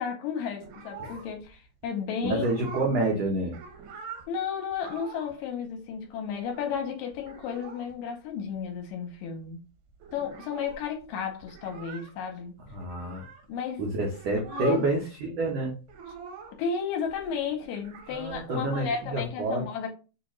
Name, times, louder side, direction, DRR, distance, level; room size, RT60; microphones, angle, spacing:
voice 1, 0.0-2.4 4.3-9.6 10.1-12.6 13.5-13.8 14.5-14.9 16.6-19.9, left 7 dB, 75° left, 2.3 m, -33 dB
sound 1, 0.6-1.5 1.8-1.9 2.2-3.0 3.3-4.3 4.7-5.4 5.6-5.7 5.9-6.8 7.1-7.9 8.2-8.3 8.5-9.1 9.4-9.5 9.7-13.5 14.0-15.0 15.3-16.7 17.0-19.3, right 5 dB, 75° right, 1.9 m, -45 dB
voice 2, 2.2-3.6 12.7-13.2 13.8-15.7 18.1-19.6, right 2 dB, 90° right, 1.4 m, -28 dB
6.8 x 2.4 x 3.0 m
omnidirectional pair, 4.3 m